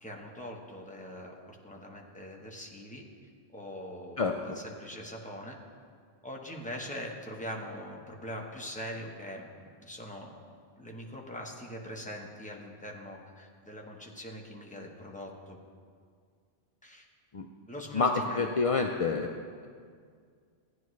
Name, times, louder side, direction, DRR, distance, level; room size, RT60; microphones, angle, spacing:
voice 1, 0.0-3.0 3.5-5.6 6.2-15.6 16.8-17.1 17.7-18.5, equal, 5° left, -1 dB, 1.0 m, -42 dB
voice 2, 4.2-4.6 17.3-17.5 17.9-19.3, left 4 dB, 55° left, 3 dB, 0.4 m, -28 dB
15.0 x 9.7 x 3.2 m, 2.1 s
omnidirectional pair, 1.1 m